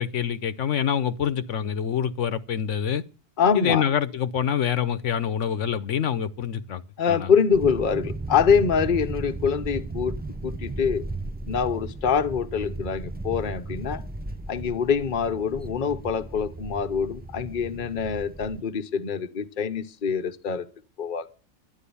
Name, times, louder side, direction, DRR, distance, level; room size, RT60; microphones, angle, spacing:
voice 1, 0.0-3.0 3.5-6.8 7.1-7.3, left 8 dB, 75° left, 1.1 m, -26 dB
voice 2, 3.4-3.8 7.0-10.2 10.4-11.0 11.5-14.0 14.5-20.6 21.0-21.3, left 6 dB, 45° left, 1.0 m, -24 dB
sound 1, 7.5-18.6, right 2 dB, 15° right, 0.3 m, -35 dB
12.0 x 11.0 x 6.9 m
omnidirectional pair, 1.3 m